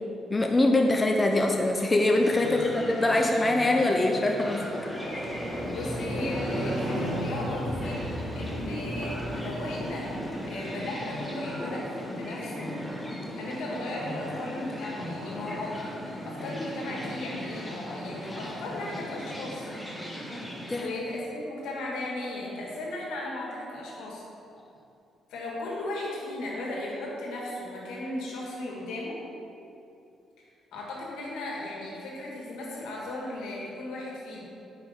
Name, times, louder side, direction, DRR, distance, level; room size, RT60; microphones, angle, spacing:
voice 1, 0.3-4.6 20.7-20.9, left 2 dB, 20° left, 2 dB, 0.6 m, -23 dB
sound 1, 1.9-20.9, equal, 5° left, 1.6 m, -37 dB
voice 2, 2.5-2.9 5.6-12.7 13.3-19.7 20.7-24.2 25.3-29.2 30.7-34.4, left 2 dB, 85° left, -3 dB, 1.7 m, -36 dB
Motorcycle, 4.9-10.8, equal, 20° right, 1.7 m, -36 dB
8.8 x 5.2 x 3.7 m, 2.7 s
cardioid pair, 90°, 0 cm